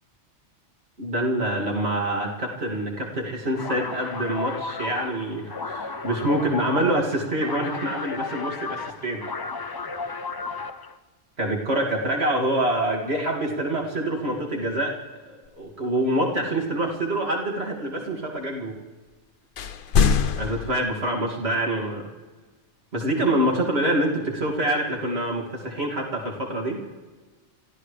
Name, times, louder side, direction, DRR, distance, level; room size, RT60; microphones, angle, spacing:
voice 1, 1.0-9.2 11.4-14.9 15.3-18.8 20.4-22.0 22.9-26.8, right 1 dB, 60° right, -2 dB, 2.8 m, -26 dB
sound 1, 3.5-10.9, left 4 dB, 35° left, 0.4 m, -33 dB
sound 2, 19.6-20.7, left 6 dB, 55° left, 0.8 m, -21 dB
30.0 x 14.5 x 3.3 m, 1.3 s
omnidirectional pair, 1.2 m